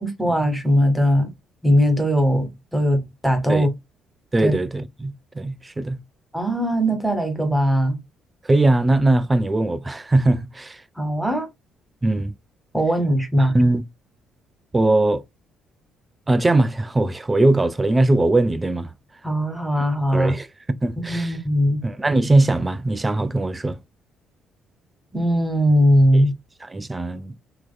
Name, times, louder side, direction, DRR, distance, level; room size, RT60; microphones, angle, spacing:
voice 1, 0.0-1.3 1.6-3.7 4.4-4.5 6.3-8.0 11.0-11.5 12.7-13.5 19.2-20.4 21.1-21.8 25.1-26.3, equal, ahead, 1.3 m, -19 dB
voice 2, 4.3-6.0 8.4-10.8 12.0-12.3 13.4-13.8 14.7-15.2 16.3-18.9 19.8-19.9 20.1-20.5 20.8-21.4 21.8-23.8 26.1-26.2 26.7-27.3, right 2 dB, 20° right, 0.4 m, -20 dB
3.7 x 2.8 x 2.2 m
figure-of-eight pair, 45°, 0 cm